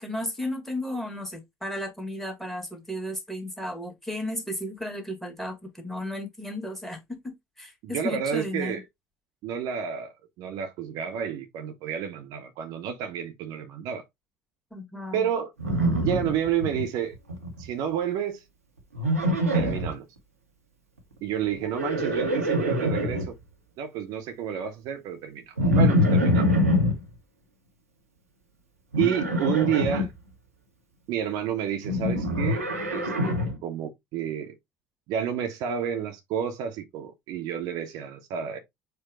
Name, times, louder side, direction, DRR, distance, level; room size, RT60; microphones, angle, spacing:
voice 1, 0.0-8.8 14.7-15.3, left 1 dB, 5° left, 1.7 m, -34 dB
voice 2, 7.8-8.8 9.4-10.1 10.4-14.0 15.1-15.5 16.0-17.1 17.6-18.4 19.5-20.1 21.2-23.4 23.8-26.5 29.0-30.1 31.1-32.6 32.9-33.3 33.6-34.5 35.1-38.6, right 9 dB, 55° right, 0.9 m, -30 dB
Livestock farm animals working animals, 15.6-16.8 17.1-17.6 18.9-19.9 21.5-23.3 25.6-27.0 28.9-30.1 31.8-33.6, equal, 85° right, 0.9 m, -24 dB
4.6 x 2.2 x 4.7 m
figure-of-eight pair, 55°, 8 cm